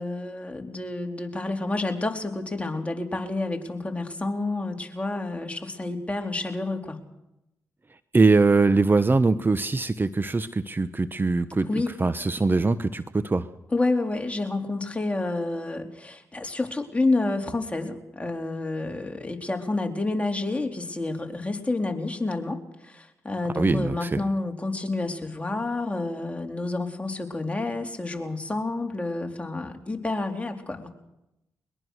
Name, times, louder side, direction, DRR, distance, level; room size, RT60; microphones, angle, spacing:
voice 1, 0.0-7.0 11.6-11.9 13.7-30.9, left 2 dB, 20° left, 3 dB, 3.9 m, -29 dB
voice 2, 8.1-11.7 12.0-13.5 23.5-24.2, right 3 dB, 30° right, 13 dB, 1.0 m, -22 dB
22.5 x 21.5 x 6.6 m, 0.89 s
supercardioid pair, 45°, 7 cm